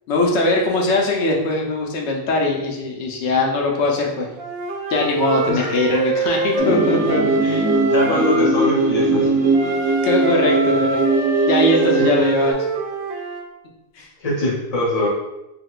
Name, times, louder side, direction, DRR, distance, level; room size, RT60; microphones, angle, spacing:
voice 1, 0.1-4.3 4.9-7.7 10.0-11.0 11.5-12.6 14.0-14.1, left 2 dB, 65° left, 0 dB, 0.8 m, -20 dB
Wind instrument woodwind instrument, 4.4-8.5 9.5-13.4, right 3 dB, 65° right, 0.7 m, -26 dB
sound 1, 6.6-12.5, right 2 dB, 90° right, 1.0 m, -19 dB
voice 2, 7.6-9.3 12.1-12.2 14.2-15.1, left 1 dB, 35° left, -4 dB, 0.8 m, -23 dB
3.5 x 2.7 x 2.3 m, 0.96 s
omnidirectional pair, 1.3 m